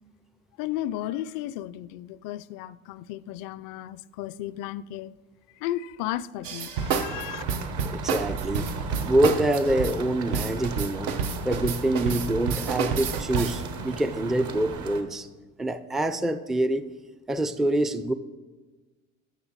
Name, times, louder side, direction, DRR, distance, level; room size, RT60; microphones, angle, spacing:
voice 1, 0.6-5.1 5.6-7.4, left 13 dB, 70° left, 0.5 m, -34 dB
sound 1, 6.4-13.7, right 6 dB, 80° right, 0.8 m, -29 dB
sound 2, 6.8-15.0, right 5 dB, 55° right, 1.2 m, -36 dB
voice 2, 7.8-8.7 9.0-11.2 11.4-15.3 15.6-16.9 17.3-18.1, right 1 dB, ahead, 0.3 m, -25 dB
10.5 x 6.8 x 4.0 m
supercardioid pair, 90°, 35 cm